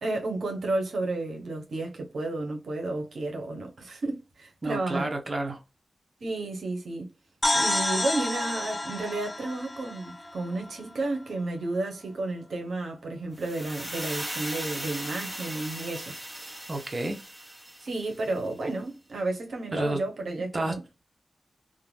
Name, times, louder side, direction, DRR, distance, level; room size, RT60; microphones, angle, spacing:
voice 1, 0.0-5.1 6.2-7.1 7.5-16.5 17.8-20.8, right 2 dB, 85° right, 0.6 m, -32 dB
voice 2, 4.6-5.6 16.7-17.2 19.7-20.0 20.5-20.7, right 2 dB, 45° right, 0.7 m, -30 dB
sound 1, 7.4-11.1, left 1 dB, 25° left, 0.4 m, -29 dB
sound 2, 13.4-18.4, right 1 dB, 10° right, 0.9 m, -38 dB
2.4 x 2.1 x 3.0 m
cardioid pair, 55°, 0 cm